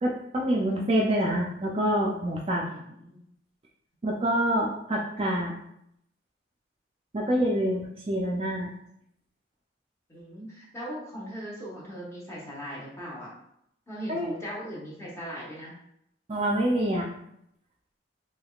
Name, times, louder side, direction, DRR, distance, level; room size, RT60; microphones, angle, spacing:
voice 1, 0.0-2.7 4.0-5.6 7.1-8.7 14.1-14.3 16.3-17.1, right 1 dB, 30° right, -2 dB, 0.4 m, -26 dB
voice 2, 2.6-3.2 10.1-13.3 13.9-15.7, equal, 15° left, -6 dB, 0.9 m, -39 dB
3.4 x 3.0 x 2.3 m, 0.76 s
head